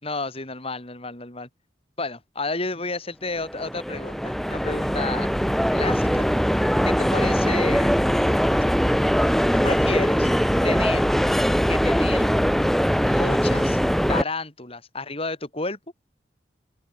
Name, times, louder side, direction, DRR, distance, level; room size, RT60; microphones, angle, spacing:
voice 1, 0.0-1.5 2.0-5.3 5.7-6.3 6.8-7.9 9.5-10.3 10.6-11.1 11.7-12.3 13.0-13.8 14.1-15.8, left 3 dB, 35° left, 4.6 m, -31 dB
sound 1, 3.4-14.2, equal, ahead, 1.0 m, -21 dB
open air
head